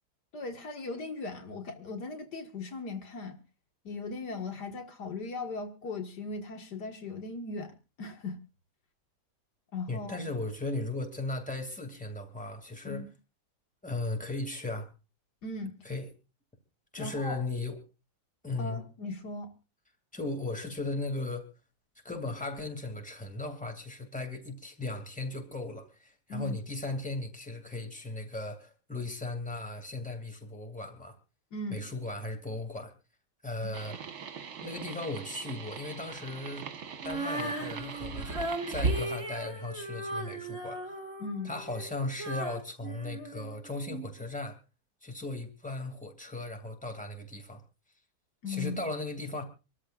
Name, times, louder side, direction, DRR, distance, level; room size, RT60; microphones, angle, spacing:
voice 1, 0.3-3.4 3.8-8.4 9.7-10.2 12.8-13.1 15.4-15.8 17.0-17.4 18.6-19.5 26.3-26.6 31.5-31.8 33.6-33.7 41.2-41.5 48.4-48.8, left 3 dB, 80° left, 2.4 m, -38 dB
voice 2, 9.9-13.0 13.8-14.9 15.8-16.1 16.9-17.8 18.4-18.8 20.1-21.4 22.0-31.1 31.7-32.9 33.4-34.0 34.6-36.7 37.0-40.8 41.4-44.6 45.0-47.6 48.5-49.4, left 2 dB, 5° left, 2.5 m, -37 dB
sound 1, 33.7-39.1, right 6 dB, 65° right, 1.9 m, -43 dB
Female singing, 37.0-44.1, right 2 dB, 50° right, 3.1 m, -36 dB
26.5 x 13.5 x 2.5 m
omnidirectional pair, 1.8 m